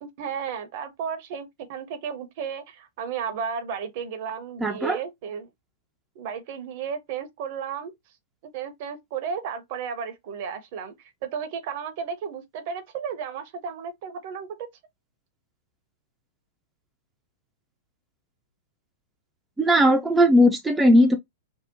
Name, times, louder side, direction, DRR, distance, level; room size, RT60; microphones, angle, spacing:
voice 1, 0.0-5.5 6.2-7.9 8.5-10.9 11.2-14.7, right 7 dB, 50° right, 0.6 m, -33 dB
voice 2, 4.6-5.0 19.6-21.2, equal, 10° right, 0.4 m, -18 dB
2.7 x 2.0 x 2.6 m
figure-of-eight pair, 100°, 0 cm